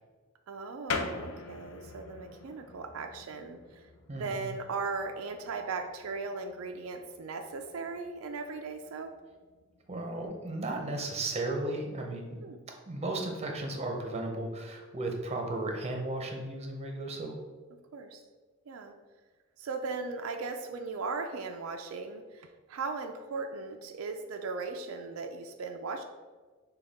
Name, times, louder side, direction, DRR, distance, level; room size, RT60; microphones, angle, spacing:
voice 1, 0.5-9.1 12.4-12.6 17.9-18.2 18.7-18.9 19.6-26.0, right 4 dB, 85° right, 5 dB, 0.4 m, -38 dB
sound 1, 0.9-11.1, left 4 dB, 80° left, 0.5 m, -44 dB
voice 2, 4.1-4.5 9.9-12.4 12.9-17.3, right 2 dB, 30° right, 2 dB, 0.7 m, -35 dB
6.3 x 2.3 x 3.4 m, 1.4 s
head